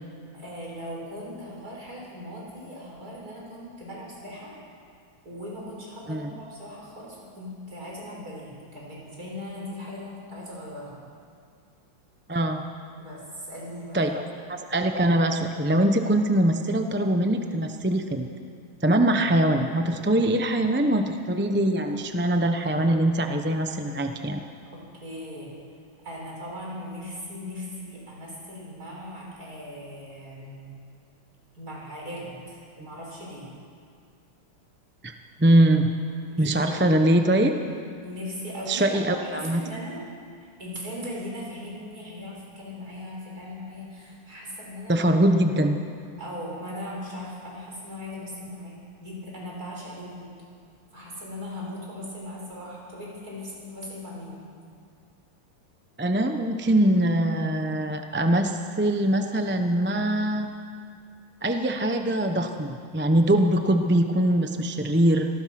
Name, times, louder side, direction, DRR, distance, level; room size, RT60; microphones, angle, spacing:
voice 1, 0.3-4.5 5.2-11.0 13.0-14.1 24.7-25.5 26.0-30.7 31.5-33.5 36.3-37.0 38.0-40.0 40.4-45.1 46.2-50.3 50.9-54.4, left 1 dB, 45° right, -4 dB, 6.8 m, -39 dB
voice 2, 12.3-12.6 13.9-14.2 14.5-18.3 18.8-24.4 35.0-35.1 35.4-35.9 36.4-37.5 38.7-39.6 44.9-45.8 56.0-60.5 61.4-65.3, right 1 dB, 10° right, 5 dB, 0.5 m, -22 dB
26.5 x 19.0 x 6.1 m, 2.3 s
omnidirectional pair, 2.3 m